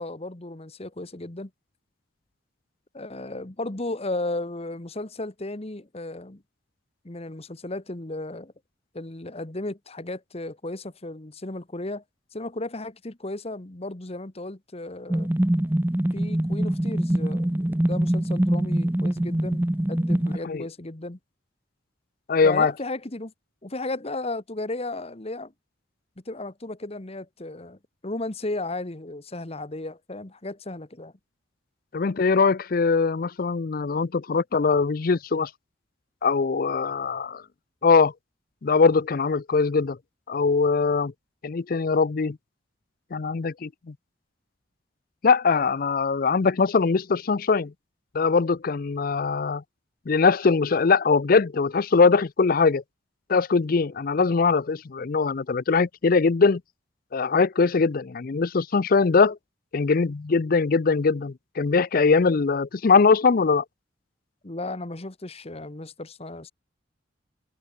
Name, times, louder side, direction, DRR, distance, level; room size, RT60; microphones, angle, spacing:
voice 1, 0.0-1.5 2.9-6.4 7.0-8.5 8.9-12.0 12.3-15.3 16.1-21.2 22.4-23.3 23.6-25.5 26.3-27.8 28.0-31.1 64.4-66.5, left 2 dB, 35° left, 1.3 m, -34 dB
sound 1, 15.1-20.4, right 1 dB, 10° right, 0.5 m, -24 dB
voice 2, 22.3-22.7 31.9-35.5 36.2-37.4 37.8-38.1 38.6-40.0 40.3-41.1 41.4-42.4 43.1-43.9 45.2-47.7 48.1-49.6 50.1-52.8 53.3-56.6 57.1-59.4 59.7-63.6, left 4 dB, 50° left, 0.5 m, -21 dB
head